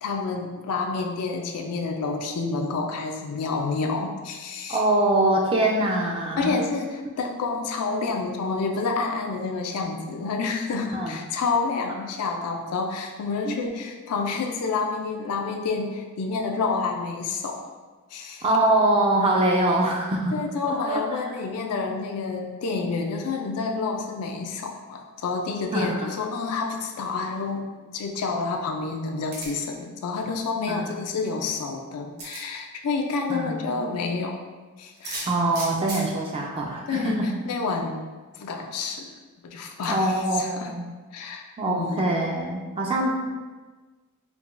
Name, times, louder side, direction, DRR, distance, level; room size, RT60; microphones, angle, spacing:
voice 1, 0.0-4.8 6.4-17.7 18.1-18.4 20.3-34.4 34.8-35.3 36.9-38.0 38.3-39.1 39.4-40.7 41.1-42.3, left 4 dB, 85° left, 3 dB, 0.4 m, -29 dB
voice 2, 4.7-6.6 10.9-11.1 13.5-13.6 18.4-20.3 20.7-21.0 25.7-26.1 30.7-30.9 33.3-33.6 35.2-37.3 39.9-40.9 41.6-43.3, right 1 dB, 25° right, -1 dB, 0.3 m, -23 dB
sound 1, 29.3-29.7 31.4-31.5 32.2-32.4 34.9-36.1 37.1-37.2 37.5-37.6 39.8-39.9, right 2 dB, 50° right, 0.8 m, -35 dB
4.6 x 2.2 x 2.4 m, 1.3 s
head